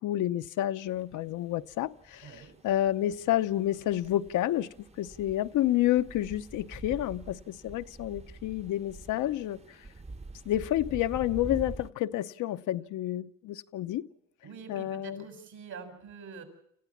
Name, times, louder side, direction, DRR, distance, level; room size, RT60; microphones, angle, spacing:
voice 1, 0.0-4.7 5.0-9.8 10.5-14.1 14.7-15.2, left 13 dB, 85° left, 0.8 m, -29 dB
sound 1, 0.9-11.9, right 3 dB, 20° right, 0.8 m, -46 dB
voice 2, 2.2-2.5 14.4-16.4, right 5 dB, 75° right, 6.5 m, -45 dB
27.5 x 15.0 x 7.3 m
cardioid pair, 90°, 30 cm